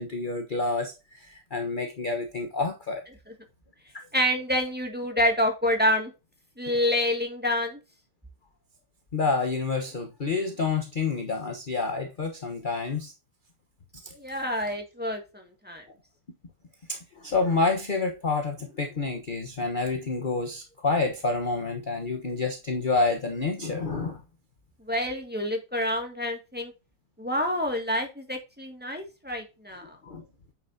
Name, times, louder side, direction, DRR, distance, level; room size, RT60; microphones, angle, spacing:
voice 1, 0.0-3.0 9.1-13.1 14.0-14.2 16.9-24.2 30.0-30.2, left 3 dB, 35° left, 1.1 m, -28 dB
voice 2, 4.1-6.1 6.6-7.8 14.2-15.8 24.9-26.7 27.2-30.0, left 1 dB, 5° right, 2.0 m, -27 dB
9.3 x 6.9 x 2.8 m
omnidirectional pair, 1.9 m